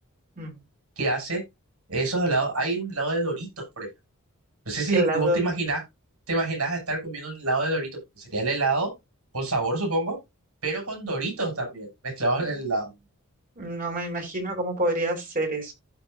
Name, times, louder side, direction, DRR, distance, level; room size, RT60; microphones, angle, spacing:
voice 1, 1.0-1.4 1.9-3.9 4.6-5.8 6.3-7.9 8.1-8.9 9.3-10.2 10.6-12.9, right 2 dB, 75° right, 6.6 m, -27 dB
voice 2, 4.9-5.4 12.8-12.9 13.6-15.7, right 1 dB, 40° right, 4.1 m, -27 dB
15.0 x 5.4 x 2.6 m
head